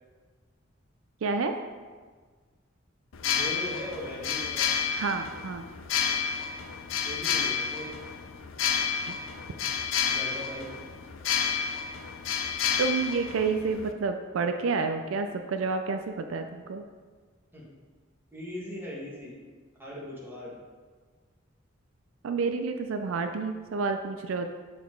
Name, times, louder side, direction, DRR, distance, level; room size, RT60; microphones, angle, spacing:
voice 1, 1.2-1.5 4.9-5.6 9.1-9.2 12.8-16.8 22.2-24.5, right 4 dB, 70° right, 6 dB, 0.4 m, -29 dB
sound 1, 3.1-13.9, left 7 dB, 75° left, 0.5 m, -30 dB
voice 2, 3.2-4.7 7.0-8.0 10.0-10.7 17.5-17.7 18.3-19.3 19.8-20.6, left 1 dB, 10° right, -6 dB, 1.7 m, -39 dB
7.3 x 4.0 x 4.5 m, 1.5 s
head